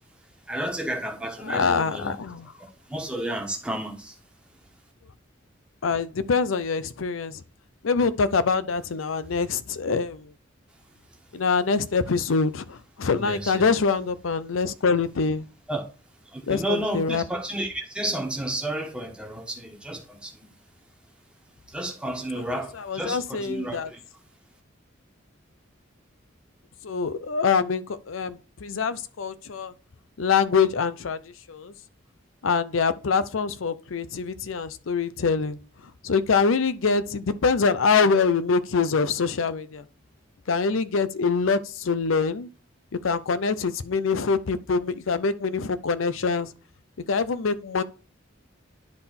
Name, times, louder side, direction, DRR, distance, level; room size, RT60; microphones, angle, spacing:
voice 1, 0.5-2.2 2.9-4.1 13.2-13.6 15.7-15.8 16.3-20.3 21.7-24.0, right 1 dB, 5° right, 1.3 m, -31 dB
voice 2, 1.4-2.5 5.8-7.4 7.8-10.3 11.3-15.5 16.5-17.2 22.8-23.9 26.8-29.7 30.2-31.7 32.4-35.6 36.0-39.9 40.5-42.5 43.0-46.5 47.1-47.8, left 5 dB, 85° left, 0.6 m, -24 dB
10.0 x 3.8 x 4.2 m
head